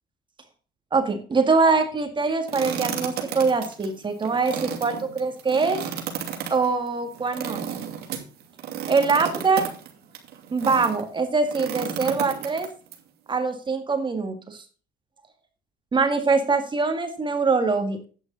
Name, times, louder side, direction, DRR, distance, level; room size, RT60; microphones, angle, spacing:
voice 1, 0.9-5.8 6.5-7.6 8.9-9.7 10.5-12.7 13.3-14.6 15.9-18.0, right 4 dB, 30° right, 7 dB, 1.9 m, -23 dB
sound 1, 2.5-11.0 11.5-12.9, right 8 dB, 70° right, 3.0 m, -33 dB
11.0 x 9.2 x 3.9 m, 0.37 s
cardioid pair, 110°, 17 cm